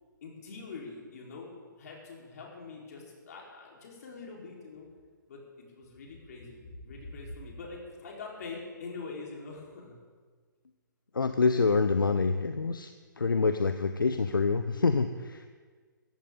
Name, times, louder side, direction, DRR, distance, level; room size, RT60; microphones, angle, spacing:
voice 1, 0.2-1.5 1.8-4.9 5.3-9.9, left 3 dB, 50° left, -2 dB, 4.2 m, -44 dB
voice 2, 11.1-12.9 13.2-15.5, left 4 dB, 75° left, 9 dB, 0.7 m, -26 dB
16.0 x 14.5 x 3.9 m, 1.5 s
figure-of-eight pair, 130°, 11 cm